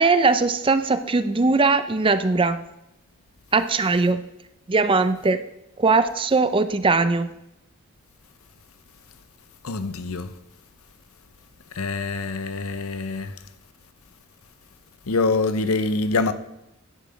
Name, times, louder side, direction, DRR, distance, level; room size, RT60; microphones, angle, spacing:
voice 1, 0.0-2.6 3.5-4.2 4.7-5.4 5.8-7.3, right 3 dB, 25° right, 0.5 m, -20 dB
voice 2, 9.6-10.3 11.7-13.3 15.1-16.3, left 3 dB, 75° left, 0.7 m, -25 dB
10.5 x 8.0 x 5.1 m
head